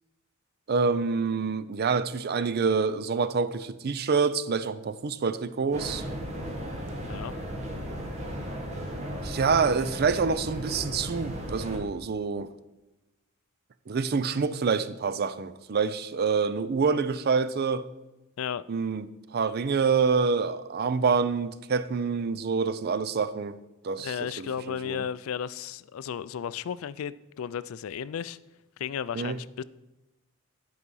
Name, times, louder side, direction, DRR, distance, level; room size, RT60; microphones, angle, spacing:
voice 1, 0.7-6.0 9.2-12.5 13.9-17.9 18.7-19.1 19.3-23.6 23.8-24.5 24.8-25.0 29.2-29.4, right 5 dB, 50° right, 0.4 m, -26 dB
sound 1, 5.7-11.8, equal, 30° right, 1.5 m, -35 dB
voice 2, 7.0-7.3 18.4-18.6 24.0-28.4 28.8-29.6, left 8 dB, 70° left, 0.3 m, -34 dB
11.0 x 4.8 x 5.5 m
head